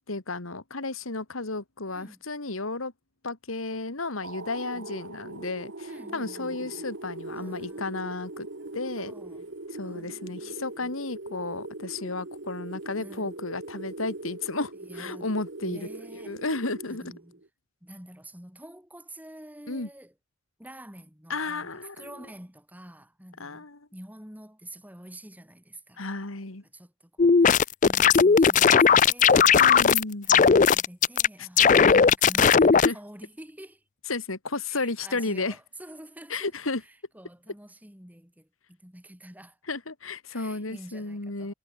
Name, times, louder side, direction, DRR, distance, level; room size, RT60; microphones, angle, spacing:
voice 1, 0.1-2.9 3.2-8.5 8.7-9.1 9.7-15.9 16.3-17.1 19.7-19.9 21.3-22.3 23.4-23.8 26.0-26.6 29.6-30.3 31.4-31.5 31.8-32.0 32.8-33.0 34.1-35.6 36.3-36.8 39.7-41.5, left 3 dB, 85° left, 2.3 m, -33 dB
voice 2, 1.9-2.2 4.6-4.9 5.9-6.8 7.4-9.5 9.8-10.9 13.0-13.3 14.8-15.3 15.6-16.4 16.9-17.4 17.8-20.1 20.6-26.0 26.7-29.6 30.2-33.8 34.7-36.5 36.8-39.6 40.3-41.5, right 1 dB, 10° right, 3.3 m, -47 dB
sound 1, 4.2-17.5, right 2 dB, 65° right, 1.5 m, -41 dB
sound 2, 27.2-30.0 30.3-31.3 31.6-32.9, left 6 dB, 35° left, 0.4 m, -17 dB
head